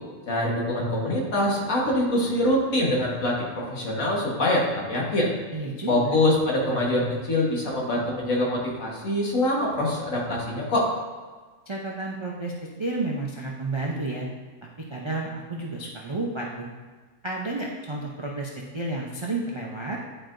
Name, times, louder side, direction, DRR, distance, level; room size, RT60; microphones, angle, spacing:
voice 1, 0.3-5.3 5.9-10.8, left 1 dB, 70° left, -3 dB, 1.8 m, -24 dB
voice 2, 5.5-6.2 11.7-12.5 12.8-14.3 14.9-16.7 17.2-20.0, right 2 dB, 40° right, -3 dB, 0.4 m, -31 dB
10.5 x 4.5 x 2.6 m, 1.4 s
omnidirectional pair, 1.5 m